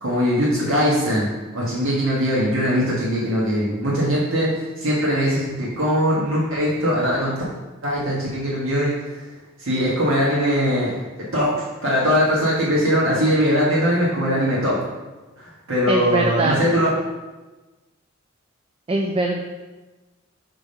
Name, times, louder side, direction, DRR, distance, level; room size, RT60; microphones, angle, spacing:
voice 1, 0.0-1.3 1.5-7.3 7.8-9.2 9.6-10.9 11.3-14.8 15.4-16.9, equal, 80° right, -6 dB, 1.5 m, -21 dB
voice 2, 15.9-16.6 18.9-19.4, right 2 dB, 25° right, 2 dB, 0.4 m, -22 dB
5.9 x 3.5 x 5.5 m, 1.2 s
head